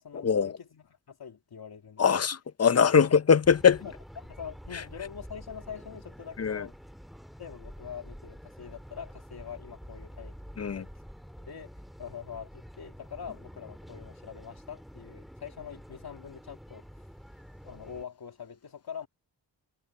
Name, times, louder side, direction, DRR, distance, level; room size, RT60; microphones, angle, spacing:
voice 1, 0.0-2.2 2.9-3.1 3.8-6.7 7.4-10.3 10.7-10.9 11.5-17.1 17.6-19.1, left 7 dB, 60° left, 2.8 m, -44 dB
voice 2, 2.0-3.8 6.4-6.6 10.6-10.8, left 6 dB, 35° left, 0.7 m, -22 dB
sound 1, 3.4-18.1, equal, ahead, 2.4 m, -48 dB
wide cardioid pair, 105°, 43 cm